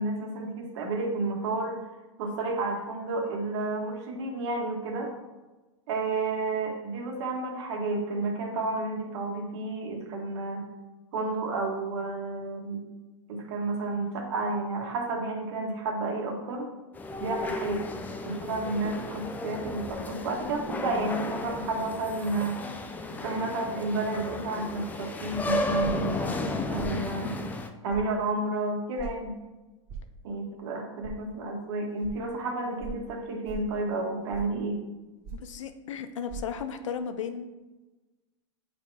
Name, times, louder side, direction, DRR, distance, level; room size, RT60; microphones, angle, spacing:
voice 1, 0.0-1.8 2.2-5.1 5.9-10.6 11.1-12.8 13.3-16.7 17.2-17.8 18.2-22.6 23.2-27.3 27.8-29.3 30.2-34.8, right 3 dB, 60° right, 1 dB, 1.7 m, -31 dB
sound 1, 16.9-27.7, left 2 dB, 10° left, 0.5 m, -34 dB
sound 2, 25.8-26.1 26.8-27.0 27.9-28.1 29.0-29.1 29.9-30.1 31.0-31.2 32.0-32.1 32.8-33.0 33.4-33.7 34.3-34.6 35.2-35.5 36.3-36.4, right 6 dB, 40° right, 1.7 m, -39 dB
voice 2, 35.3-37.5, left 7 dB, 80° left, 9 dB, 0.7 m, -35 dB
8.3 x 4.4 x 3.5 m, 1.1 s
hypercardioid pair, 125°, 16 cm